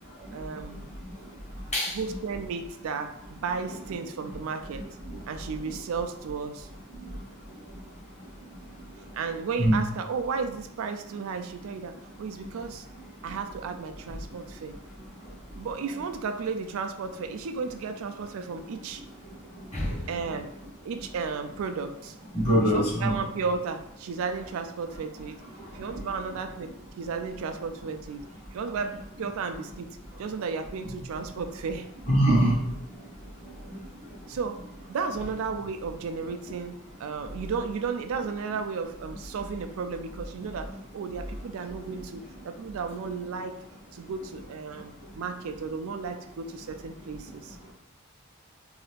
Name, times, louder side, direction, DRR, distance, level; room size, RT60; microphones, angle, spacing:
voice 1, 0.3-1.0 1.9-4.9 5.3-6.7 9.1-12.9 13.2-14.8 15.6-19.0 20.1-20.5 20.8-22.1 22.6-25.4 25.7-28.2 28.5-31.9 34.3-34.6 34.9-43.6 43.9-47.6, right 5 dB, 70° right, 7 dB, 0.3 m, -34 dB
voice 2, 22.3-23.2 32.0-32.6, equal, 30° left, -5 dB, 1.0 m, -22 dB
2.7 x 2.4 x 3.3 m, 0.79 s
head